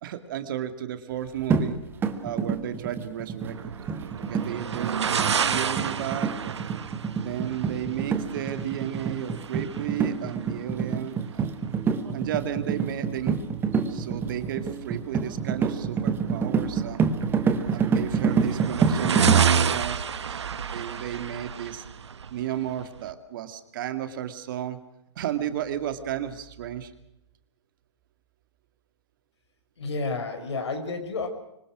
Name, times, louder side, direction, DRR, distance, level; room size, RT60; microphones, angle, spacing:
voice 1, 0.0-1.8 2.2-3.7 4.2-6.6 7.2-11.5 12.1-13.4 13.9-17.1 17.7-21.8 22.3-24.8 25.2-26.9, right 11 dB, 45° right, 10 dB, 2.3 m, -33 dB
sound 1, 1.5-19.4, right 5 dB, 15° right, 1.7 m, -27 dB
sound 2, 3.4-23.1, right 7 dB, 70° right, 1.5 m, -30 dB
voice 2, 29.8-31.3, left 3 dB, 70° left, 7 dB, 5.6 m, -30 dB
25.5 x 23.0 x 6.2 m, 0.86 s
hypercardioid pair, 130°, 15 cm